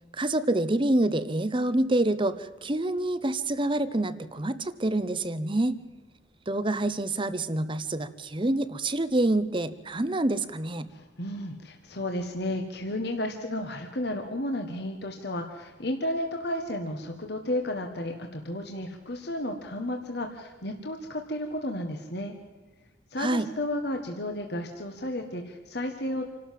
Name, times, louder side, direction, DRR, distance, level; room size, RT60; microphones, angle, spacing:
voice 1, 0.2-5.8 6.5-10.9 23.2-23.5, right 1 dB, 25° right, 14 dB, 0.9 m, -27 dB
voice 2, 10.9-22.3 23.1-26.3, left 1 dB, 60° left, 4 dB, 1.6 m, -33 dB
27.5 x 12.5 x 7.6 m, 1.4 s
head